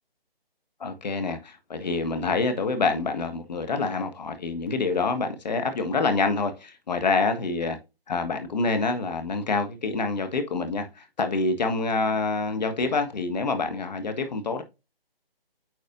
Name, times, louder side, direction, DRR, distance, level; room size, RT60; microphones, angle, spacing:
voice 1, 0.8-7.8 8.1-14.6, left 3 dB, 45° left, 1.5 m, -26 dB
9.2 x 4.6 x 2.5 m
figure-of-eight pair, 165°, 30 cm